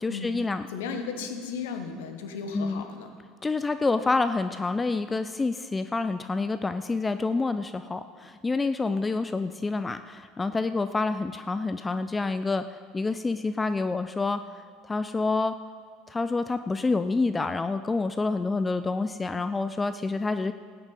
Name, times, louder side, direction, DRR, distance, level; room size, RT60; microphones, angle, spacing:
voice 1, 0.0-0.6 2.5-2.8 3.4-12.6 12.9-14.4 14.9-15.5 16.1-20.5, left 3 dB, 15° left, 11 dB, 0.4 m, -27 dB
voice 2, 0.7-3.1, left 5 dB, 65° left, 6 dB, 1.2 m, -35 dB
17.0 x 9.6 x 4.1 m, 2.1 s
figure-of-eight pair, 65°, 0 cm